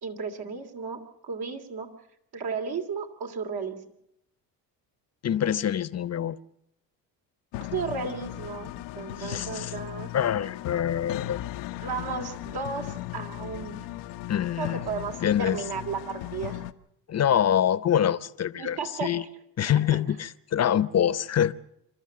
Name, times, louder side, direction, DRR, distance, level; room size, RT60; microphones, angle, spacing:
voice 1, 0.0-1.9 2.3-3.8 7.6-10.1 11.8-13.9 14.6-16.6 18.6-19.1 19.7-20.0, right 5 dB, 60° right, 2.9 m, -34 dB
voice 2, 5.2-6.4 9.2-9.7 10.1-11.4 14.3-14.8 15.2-15.6 17.1-19.2 19.6-21.5, left 10 dB, 40° left, 0.8 m, -25 dB
sound 1, 7.5-16.7, left 15 dB, 85° left, 0.9 m, -37 dB
27.0 x 13.0 x 7.6 m
supercardioid pair, 90°, 41 cm